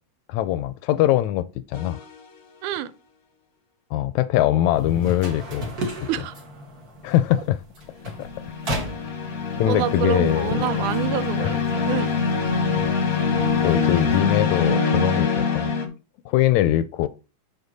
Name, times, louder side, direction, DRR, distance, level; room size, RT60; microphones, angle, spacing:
voice 1, 0.3-2.0 3.9-5.7 6.0-6.1 7.0-7.6 8.2-8.3 9.6-10.5 11.4-11.6 13.6-15.7 16.2-17.1, left 13 dB, 80° left, 1.8 m, -22 dB
sound 1, 1.7-2.1 8.0-15.8, left 5 dB, 45° left, 1.2 m, -24 dB
sound 2, 4.7-14.6, left 2 dB, 35° right, 1.8 m, -35 dB
voice 2, 9.7-12.1, right 11 dB, 85° right, 2.1 m, -27 dB
8.1 x 5.4 x 4.0 m
omnidirectional pair, 3.5 m